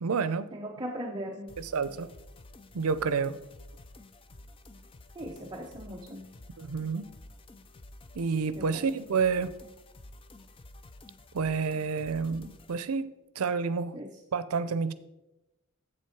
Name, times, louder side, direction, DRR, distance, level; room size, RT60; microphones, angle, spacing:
voice 1, 0.0-0.5 1.6-2.1 2.7-3.4 6.6-7.1 8.1-9.5 11.3-14.0 14.3-14.9, right 5 dB, 85° right, 15 dB, 0.5 m, -29 dB
voice 2, 0.5-1.6 5.1-6.3 8.6-8.9 13.9-14.2, equal, 20° right, 0 dB, 0.6 m, -39 dB
sound 1, 1.5-12.8, left 2 dB, 25° left, 0.4 m, -51 dB
7.6 x 7.5 x 4.6 m, 0.95 s
head